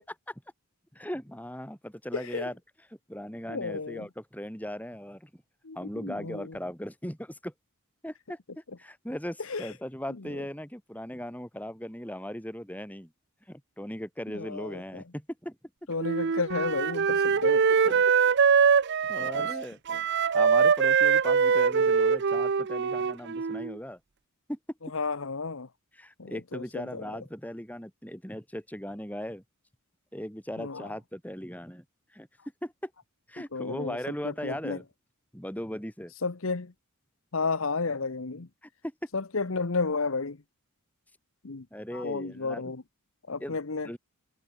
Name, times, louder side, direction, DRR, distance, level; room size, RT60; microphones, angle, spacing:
voice 1, 0.9-2.6 3.1-5.4 5.7-7.5 8.0-13.1 13.5-15.6 19.1-19.8 20.3-24.0 24.5-24.6 25.9-29.4 30.1-31.8 32.1-32.3 32.6-32.9 33.3-34.9 35.3-36.1 38.8-38.9 41.7-42.7 43.4-43.6 43.8-44.0, equal, 5° left, 5.7 m, -38 dB
voice 2, 2.1-2.4 3.5-4.1 5.6-6.5 9.5-9.7 10.3-10.4 14.3-15.0 15.9-18.0 19.2-19.5 19.9-20.0 24.9-25.7 26.2-27.0 30.6-30.9 33.5-34.0 34.2-34.8 36.2-36.7 37.3-38.5 39.1-40.4 41.4-41.6 41.9-42.8 43.3-43.9, left 4 dB, 65° left, 1.0 m, -32 dB
Wind instrument woodwind instrument, 16.0-23.7, right 6 dB, 50° right, 0.5 m, -23 dB
head